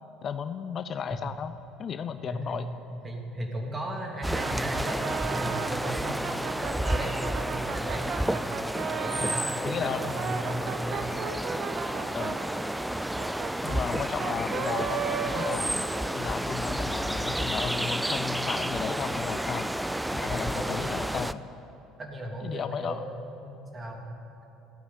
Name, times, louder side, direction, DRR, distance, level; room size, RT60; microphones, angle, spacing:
voice 1, 0.2-1.5 1.8-2.7 9.6-10.1 12.1-12.4 13.6-15.7 16.1-19.7 20.1-21.4 22.4-23.0, left 7 dB, 45° left, 11 dB, 0.6 m, -34 dB
voice 2, 2.2-2.6 2.9-8.4 8.9-11.1 20.2-20.8 22.0-23.3 23.7-24.1, right 1 dB, 25° right, 1 dB, 3.0 m, -36 dB
sound 1, 4.2-21.3, right 1 dB, 5° right, 0.5 m, -31 dB
Brass instrument, 4.3-9.5 10.0-16.3, right 6 dB, 50° right, 1.2 m, -36 dB
15.0 x 9.3 x 8.7 m, 2.8 s
hypercardioid pair, 65°, 0 cm